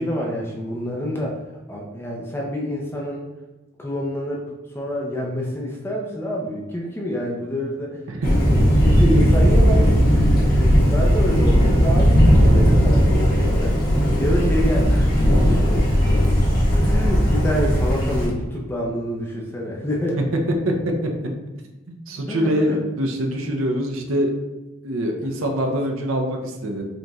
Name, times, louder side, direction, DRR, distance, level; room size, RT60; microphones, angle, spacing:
voice 1, 0.0-1.4 1.7-3.2 3.8-4.5 4.7-8.0 8.3-8.4 8.8-9.9 10.6-13.8 14.2-16.4 16.8-20.2 22.3-22.8 25.2-25.5, equal, 10° left, -3 dB, 0.5 m, -27 dB
Thunder, 8.2-18.3, equal, 45° left, 1.4 m, -17 dB
voice 2, 20.5-20.9 21.9-24.3 24.8-26.8, equal, 70° right, 3 dB, 0.6 m, -24 dB
5.1 x 3.0 x 2.4 m, 1.1 s
head